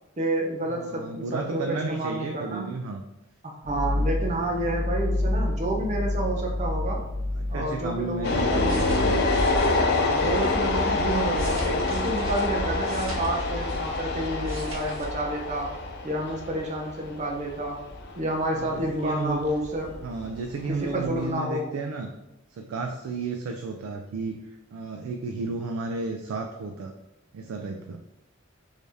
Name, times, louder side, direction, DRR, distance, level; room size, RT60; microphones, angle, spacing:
voice 1, 0.2-2.7 3.4-7.0 7.5-8.9 9.9-15.8 16.0-17.8 18.2-19.9 20.7-21.7, right 1 dB, 35° right, 0 dB, 0.6 m, -29 dB
voice 2, 0.7-3.0 7.4-9.2 18.5-19.5 20.0-22.1 22.5-26.9 27.3-28.0, right 3 dB, 90° right, 4 dB, 0.3 m, -33 dB
sound 1, 3.6-9.5, left 1 dB, 35° left, 0.8 m, -29 dB
sound 2, 8.2-21.3, left 3 dB, 50° left, 0.5 m, -27 dB
sound 3, 8.7-10.6 11.1-14.1 14.3-15.1 15.4-15.6, right 2 dB, 75° right, 0.8 m, -42 dB
3.3 x 2.7 x 3.4 m, 0.90 s
head